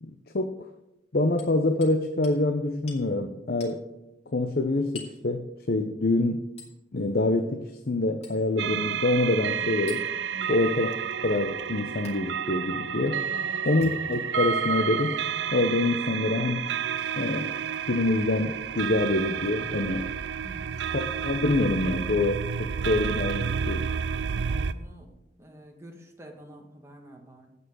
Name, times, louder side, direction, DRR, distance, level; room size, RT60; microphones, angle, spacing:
voice 1, 0.0-0.7 1.1-3.8 4.3-6.5 6.9-10.0 10.5-10.9 11.2-13.2 13.7-15.2 15.5-16.7 17.2-17.5 17.9-20.1 20.9-23.9, left 2 dB, 55° left, 6 dB, 0.7 m, -26 dB
Hammer, 1.4-2.0 2.2-2.4 2.9-3.1 3.6-3.8 5.0-5.2 6.6-6.8 8.2-8.4 9.9-10.1 12.1-12.2 13.7-14.4 15.2-15.3 16.6-16.8 17.7-17.9 19.4-19.5, left 4 dB, 35° left, 2.5 m, -46 dB
sound 1, 8.6-24.7, right 7 dB, 80° right, 0.5 m, -30 dB
voice 2, 10.3-10.6 13.3-13.6 20.4-20.7 24.3-25.1 25.4-27.5, right 1 dB, 15° right, 2 dB, 1.7 m, -48 dB
16.0 x 5.6 x 6.3 m, 0.90 s
head